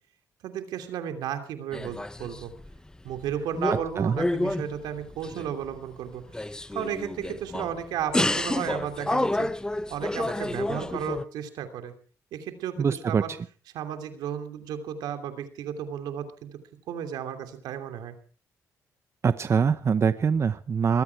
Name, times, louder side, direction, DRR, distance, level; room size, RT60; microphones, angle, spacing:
voice 1, 0.4-2.5 3.0-6.2 6.7-9.5 9.9-11.9 12.3-13.3 13.7-16.6 16.9-18.2, right 9 dB, 85° right, 8 dB, 2.9 m, -33 dB
sound 1, 1.7-2.8 3.1-5.7 6.2-7.7 8.1-11.2, left 1 dB, 10° left, 0.9 m, -29 dB
voice 2, 12.8-13.2 19.2-21.0, right 6 dB, 40° right, 13 dB, 0.8 m, -23 dB
21.0 x 14.5 x 4.7 m, 0.40 s
cardioid pair, 80°, 7 cm